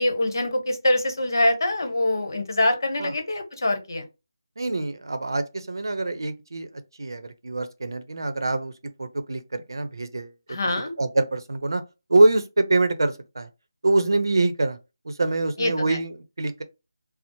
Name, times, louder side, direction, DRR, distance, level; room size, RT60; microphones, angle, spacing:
voice 1, 0.0-4.1 10.5-10.9 15.6-16.0, left 1 dB, 60° left, 1.0 m, -24 dB
voice 2, 4.6-6.7 7.0-8.7 9.0-11.8 12.1-13.5 13.8-14.8 15.0-16.6, right 2 dB, 70° right, 0.6 m, -24 dB
4.3 x 2.0 x 2.7 m
figure-of-eight pair, 170°, 2 cm